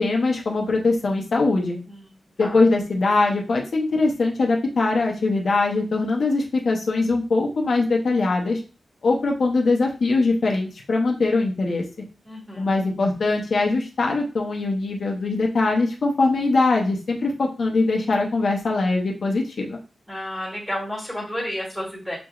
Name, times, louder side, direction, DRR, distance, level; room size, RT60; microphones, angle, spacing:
voice 1, 0.0-1.8 2.4-8.6 9.0-11.8 12.6-19.8, left 3 dB, 60° left, 0 dB, 0.7 m, -22 dB
voice 2, 12.2-12.8 20.1-22.2, equal, 5° right, -3 dB, 1.6 m, -31 dB
6.0 x 2.9 x 2.4 m, 0.33 s
wide cardioid pair, 170°, 0 cm